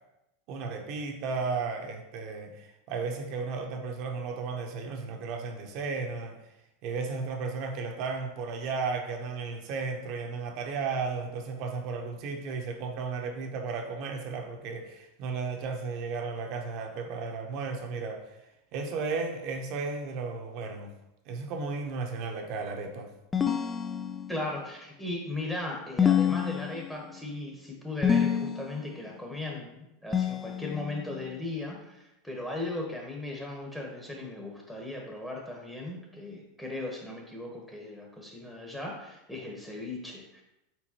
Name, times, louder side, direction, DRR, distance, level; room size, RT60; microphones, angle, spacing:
voice 1, 0.5-6.3 6.8-18.3 18.7-20.9 21.3-23.1, right 4 dB, 55° right, 3 dB, 0.8 m, -34 dB
sound 1, 23.3-24.5 26.0-27.1 28.0-28.9 30.1-31.1, left 8 dB, 20° left, 0.3 m, -27 dB
voice 2, 24.3-40.4, left 2 dB, 5° left, 0 dB, 0.9 m, -37 dB
4.5 x 3.9 x 2.9 m, 0.89 s
hypercardioid pair, 100°, 0 cm